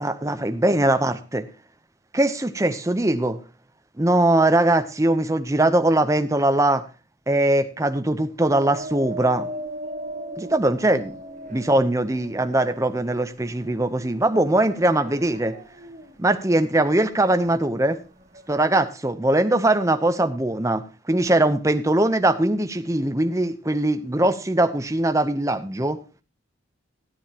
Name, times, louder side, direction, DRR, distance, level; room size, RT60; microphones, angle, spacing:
voice 1, 0.0-1.5 2.1-3.4 4.0-6.8 7.3-9.5 10.4-11.1 11.5-15.6 16.2-18.0 18.5-26.0, right 1 dB, 15° right, 8 dB, 0.7 m, -21 dB
sound 1, 8.5-18.6, right 1 dB, 40° right, 2.1 m, -38 dB
16.5 x 9.6 x 2.9 m, 0.32 s
head